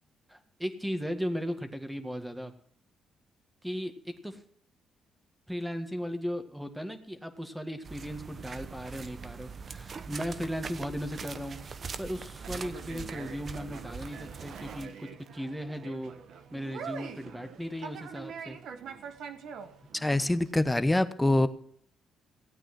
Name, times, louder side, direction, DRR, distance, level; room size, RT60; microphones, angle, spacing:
voice 1, 0.3-2.5 3.6-3.9 4.2-4.4 5.5-11.6 12.0-16.1 16.5-18.6, equal, 5° right, 7 dB, 1.9 m, -36 dB
sound 1, 7.8-14.9, right 5 dB, 45° right, 0.9 m, -42 dB
Conversation, 12.1-20.5, right 6 dB, 75° right, 1.4 m, -45 dB
voice 2, 19.9-21.5, left 1 dB, 10° left, 12 dB, 1.1 m, -25 dB
16.0 x 8.8 x 6.2 m, 0.64 s
cardioid pair, 90°, 0 cm